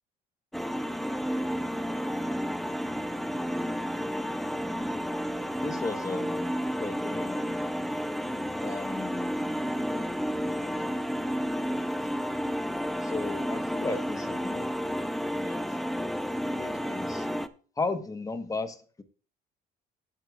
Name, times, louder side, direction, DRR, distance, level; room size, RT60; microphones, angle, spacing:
sound 1, 0.5-17.5, equal, ahead, 0.7 m, -31 dB
voice 1, 5.6-7.5 8.6-9.3 9.7-10.7 13.0-15.0 15.3-15.6 16.5-17.3 17.8-19.0, left 3 dB, 20° left, 9 dB, 1.3 m, -36 dB
16.0 x 8.2 x 2.4 m, 0.40 s
cardioid pair, 110°, 17 cm